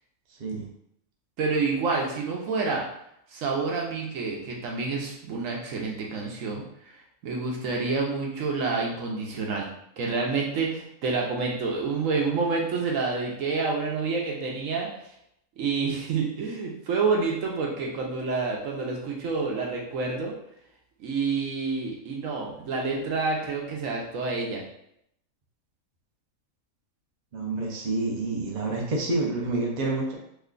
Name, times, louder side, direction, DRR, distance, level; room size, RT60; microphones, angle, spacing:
voice 1, 1.4-2.8 3.3-6.6 6.9-9.7 10.0-14.9 15.6-20.3 21.0-24.6, right 4 dB, 70° right, -1 dB, 1.0 m, -28 dB
voice 2, 27.3-30.2, right 2 dB, 45° right, -1 dB, 0.6 m, -28 dB
3.2 x 2.2 x 3.7 m, 0.74 s
omnidirectional pair, 1.5 m